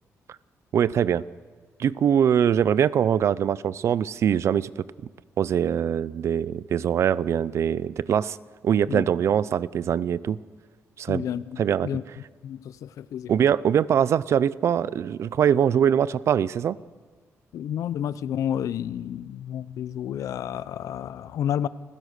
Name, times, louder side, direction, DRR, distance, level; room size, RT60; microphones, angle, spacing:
voice 1, 0.7-1.2 1.8-4.8 5.4-8.4 8.6-10.4 11.0-11.2 11.6-11.9 13.3-16.8, right 8 dB, 55° right, 19 dB, 0.5 m, -22 dB
voice 2, 11.1-12.0 12.4-13.3 17.5-21.7, left 10 dB, 85° left, 16 dB, 0.7 m, -30 dB
28.5 x 16.0 x 6.6 m, 1.5 s
wide cardioid pair, 170°, 5 cm